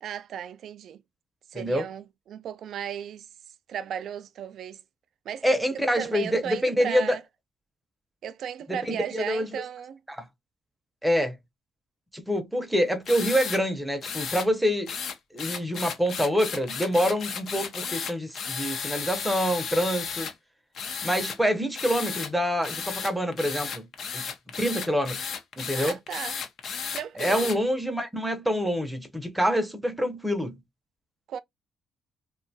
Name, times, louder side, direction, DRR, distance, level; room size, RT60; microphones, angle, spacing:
voice 1, 0.0-1.0 1.5-3.3 3.7-4.8 5.3-7.2 8.2-10.0 25.7-26.4 26.9-27.5 31.3-31.4, right 9 dB, 70° right, 0.3 m, -35 dB
voice 2, 1.5-1.8 5.4-7.2 8.7-9.5 10.1-10.3 11.0-11.4 12.1-15.0 15.3-20.3 21.0-23.9 24.1-24.3 24.6-25.3 25.6-26.0 27.2-30.6, equal, 5° right, 0.6 m, -26 dB
sound 1, 13.1-13.6 14.0-14.5 14.9-20.3 20.7-21.4 21.7-22.3 22.6-27.6, left 6 dB, 60° left, 0.6 m, -34 dB
2.6 x 2.2 x 2.6 m
cardioid pair, 90°, 0 cm